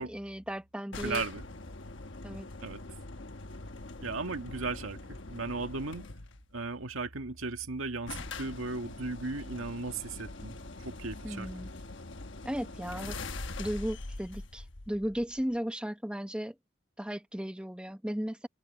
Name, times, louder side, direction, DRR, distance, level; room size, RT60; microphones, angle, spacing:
voice 1, 0.0-1.2 2.2-2.5 11.2-11.7 12.4-13.2 13.6-16.6 17.0-18.5, equal, 5° right, 0.9 m, -35 dB
sound 1, 0.9-6.4 7.4-7.5 7.7-7.8 8.1-15.6, left 2 dB, 60° left, 1.3 m, -43 dB
voice 2, 1.0-1.4 2.6-2.8 4.0-6.1 6.5-11.5, right 3 dB, 80° right, 1.9 m, -36 dB
head